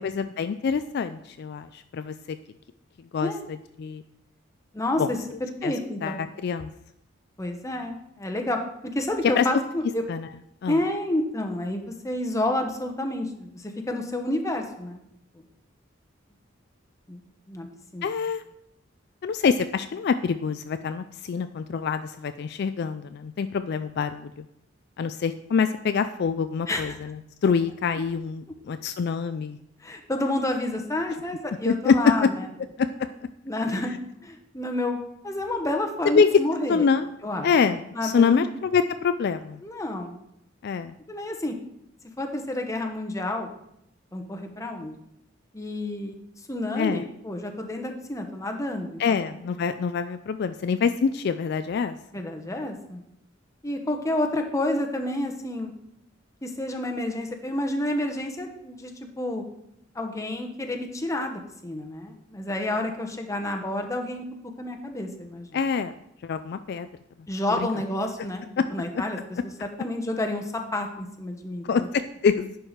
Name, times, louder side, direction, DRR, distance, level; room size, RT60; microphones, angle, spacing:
voice 1, 0.0-2.4 3.1-3.3 3.8-4.0 5.0-5.1 5.6-5.7 6.0-6.7 9.4-9.5 10.1-10.3 10.6-10.8 18.0-18.4 19.2-24.4 25.0-27.2 27.4-29.6 31.7-32.0 32.2-32.3 32.8-32.9 36.0-36.3 36.7-37.1 37.4-39.6 40.6-40.9 46.8-47.0 49.0-52.0 65.5-65.9 66.2-66.9 67.5-67.7 68.6-68.7 71.6-72.6, left 6 dB, 55° left, 10 dB, 0.3 m, -25 dB
voice 2, 4.7-5.2 5.6-6.1 7.4-8.6 8.9-10.0 10.7-15.0 17.1-17.2 17.5-17.7 17.9-18.1 26.7-27.0 29.8-32.5 33.5-33.9 34.2-35.0 35.2-36.8 37.2-37.5 37.9-38.4 39.6-40.2 41.1-41.5 42.2-43.5 44.1-45.0 45.5-46.1 46.5-49.3 52.1-53.0 53.6-55.7 56.4-58.9 59.2-59.4 59.9-64.2 64.6-65.6 67.3-68.4 68.7-69.2 69.4-71.9, left 1 dB, 15° left, 3 dB, 0.9 m, -29 dB
10.5 x 4.7 x 5.0 m, 0.78 s
head